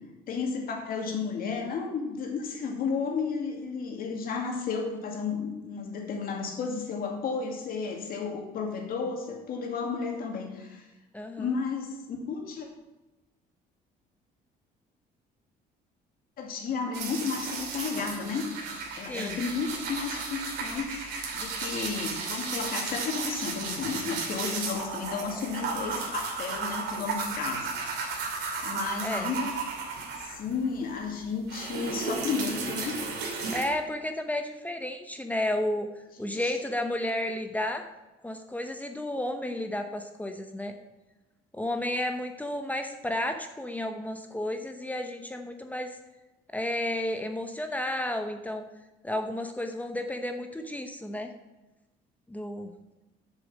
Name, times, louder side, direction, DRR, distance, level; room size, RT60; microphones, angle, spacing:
voice 1, 0.3-10.9 11.4-12.7 16.4-18.4 19.0-20.9 21.3-27.7 28.6-29.5 30.1-33.0 36.2-36.5, left 5 dB, 60° left, 2 dB, 2.3 m, -33 dB
voice 2, 11.1-11.5 19.1-19.4 29.0-29.3 33.5-35.9 36.2-37.8 38.2-40.7 41.5-46.0 46.5-48.6 49.0-51.3 52.3-52.7, left 1 dB, 10° left, 5 dB, 0.9 m, -32 dB
sound 1, 16.9-30.7 31.0-33.6, right 4 dB, 80° right, 2.6 m, -34 dB
7.7 x 6.9 x 7.3 m, 1.1 s
cardioid pair, 110°, 17 cm